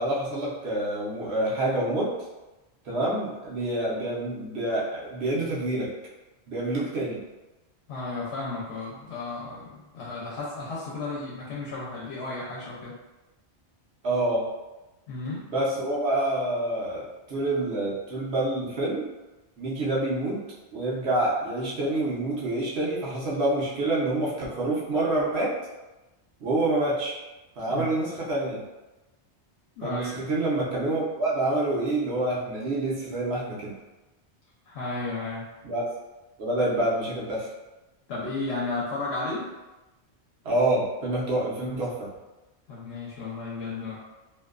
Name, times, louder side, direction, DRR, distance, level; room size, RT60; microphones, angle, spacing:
voice 1, 0.0-2.1 2.8-5.9 6.5-7.2 14.0-14.4 15.5-19.1 19.6-20.4 20.7-25.5 26.4-27.2 27.6-28.6 29.8-33.7 35.6-35.9 36.4-37.5 40.4-42.1, right 2 dB, 70° right, -5 dB, 1.0 m, -27 dB
voice 2, 7.9-12.9 15.1-15.5 27.7-28.0 29.8-30.1 34.7-35.5 38.1-39.5 42.7-44.0, left 3 dB, 70° left, -5 dB, 0.9 m, -33 dB
2.7 x 2.2 x 2.3 m, 1.1 s
omnidirectional pair, 1.2 m